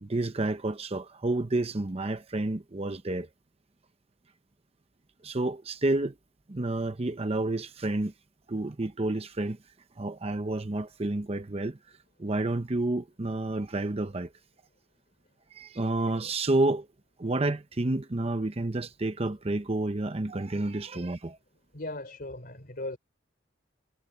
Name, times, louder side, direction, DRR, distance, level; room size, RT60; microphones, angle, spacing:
voice 1, 0.0-3.3 5.2-6.1 6.5-8.1 8.5-9.6 10.0-11.8 12.2-14.3 15.5-16.9 17.2-21.4, right 2 dB, 35° right, 0.8 m, -30 dB
voice 2, 21.7-23.0, left 2 dB, 55° left, 3.7 m, -38 dB
head